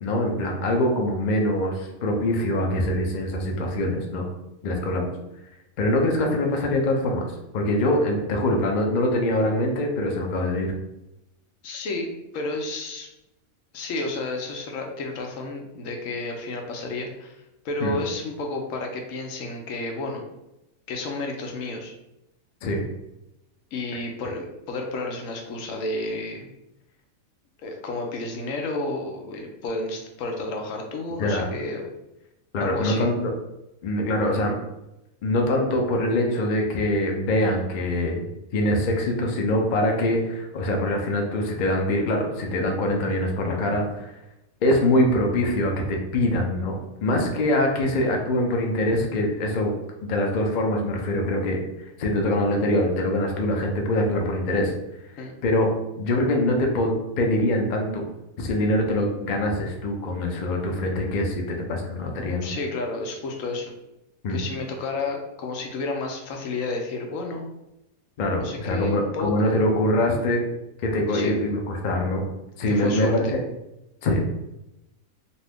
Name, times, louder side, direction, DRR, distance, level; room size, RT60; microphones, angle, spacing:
voice 1, 0.0-4.2 4.6-5.1 5.8-7.2 7.5-10.7 17.8-18.0 22.6-22.8 31.2-31.5 32.5-33.3 33.8-34.6 35.2-38.3 38.5-44.1 44.6-49.7 50.0-51.6 52.0-54.7 55.4-55.7 56.0-58.0 58.4-62.5 64.2-64.4 68.2-70.4 70.8-72.2 72.6-73.4 74.0-74.2, left 1 dB, 85° left, 1 dB, 0.4 m, -23 dB
voice 2, 11.6-13.1 13.7-17.4 17.6-20.2 20.9-21.9 23.7-26.5 27.6-31.8 32.6-33.1 55.2-55.3 62.4-63.7 64.3-67.5 68.4-69.6 71.1-71.3 72.7-73.3, left 2 dB, 70° left, 2 dB, 0.9 m, -31 dB
2.6 x 2.6 x 3.4 m, 0.92 s
omnidirectional pair, 1.5 m